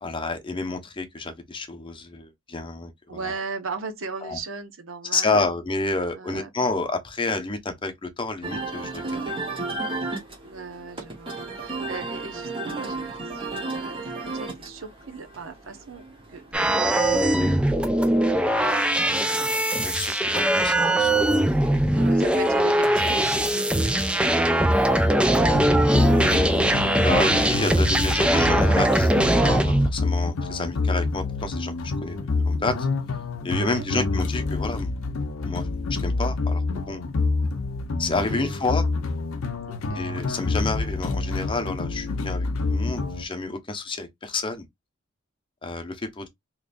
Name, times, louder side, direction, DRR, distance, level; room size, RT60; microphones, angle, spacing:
voice 1, 0.0-3.3 4.2-4.4 5.1-9.3 19.8-21.8 25.8-29.1 29.4-31.7 32.0-32.9 33.4-34.9 35.4-35.7 36.0-37.0 38.0-38.8 39.9-44.7 45.6-46.3, left 3 dB, 25° left, 0.7 m, -30 dB
voice 2, 3.1-5.5 6.1-6.5 10.4-16.0 16.3-17.9 21.9-24.2 33.5-33.9 38.2-38.6 39.7-40.0, right 4 dB, 75° right, 0.8 m, -38 dB
sound 1, 8.4-17.8, right 2 dB, 25° right, 1.1 m, -34 dB
sound 2, 16.5-29.9, right 1 dB, 5° right, 0.3 m, -21 dB
sound 3, 25.4-43.2, left 3 dB, 85° left, 0.6 m, -27 dB
3.7 x 3.0 x 2.5 m
head